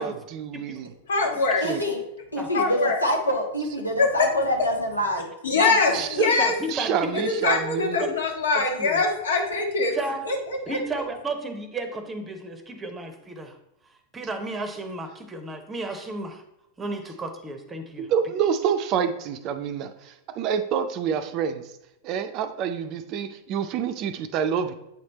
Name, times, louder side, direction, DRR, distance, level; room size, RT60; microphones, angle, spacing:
voice 1, 0.0-0.9 1.6-1.8 5.9-6.3 6.7-8.0 18.0-21.7 22.0-24.7, right 8 dB, 40° right, 9 dB, 0.5 m, -27 dB
voice 2, 1.1-1.6 2.5-3.0 4.0-4.1 5.4-6.5 7.1-9.9 10.2-10.8, left 3 dB, 65° left, 1 dB, 1.4 m, -23 dB
voice 3, 1.6-2.0 2.3-6.0, equal, 85° left, 0 dB, 1.2 m, -26 dB
voice 4, 6.4-7.2 8.8-9.0 9.9-10.3 10.7-13.6 14.1-16.4 16.8-18.1, right 2 dB, 15° right, 8 dB, 0.8 m, -33 dB
8.4 x 3.2 x 4.0 m, 0.83 s
figure-of-eight pair, 90°, 0 cm